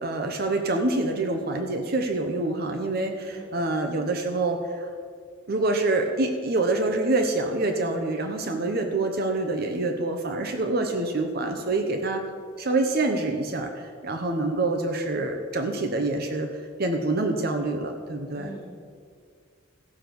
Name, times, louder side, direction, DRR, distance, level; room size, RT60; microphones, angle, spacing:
voice 1, 0.0-4.9 5.5-12.2 12.6-18.5, right 2 dB, 50° right, 5 dB, 0.9 m, -26 dB
voice 2, 18.3-18.7, equal, 20° left, -7 dB, 3.9 m, -42 dB
15.0 x 6.1 x 6.9 m, 2.1 s
head